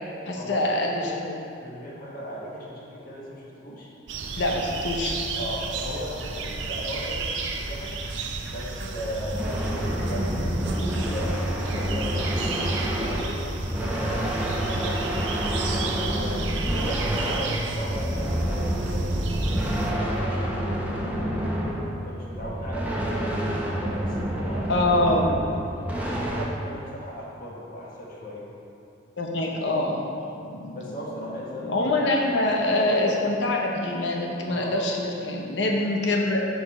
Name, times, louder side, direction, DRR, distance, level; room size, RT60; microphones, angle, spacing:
voice 1, 0.3-1.3 4.4-5.2 24.7-25.3 29.2-30.8 31.7-36.5, left 1 dB, 70° left, 0 dB, 0.7 m, -25 dB
voice 2, 1.6-3.9 5.3-8.0 8.4-9.5 10.0-13.3 13.5-14.2 14.6-15.3 15.7-19.2 19.5-21.3 22.0-23.4 23.8-24.8 25.4-28.5 30.7-32.2 34.5-34.8, equal, 50° left, -5 dB, 1.5 m, -37 dB
sound 1, 4.1-19.9, right 3 dB, 80° right, 0.6 m, -32 dB
sound 2, 9.2-26.5, equal, 10° right, 0.8 m, -28 dB
6.4 x 4.8 x 5.4 m, 2.7 s
head